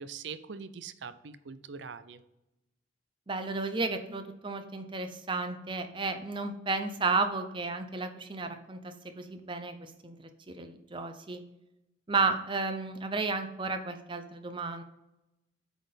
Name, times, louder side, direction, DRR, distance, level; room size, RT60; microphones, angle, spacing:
voice 1, 0.0-2.2, right 5 dB, 65° right, 14 dB, 0.5 m, -43 dB
voice 2, 3.3-11.4 12.1-14.8, right 3 dB, 25° right, 8 dB, 0.6 m, -33 dB
8.0 x 4.2 x 5.1 m, 0.92 s
head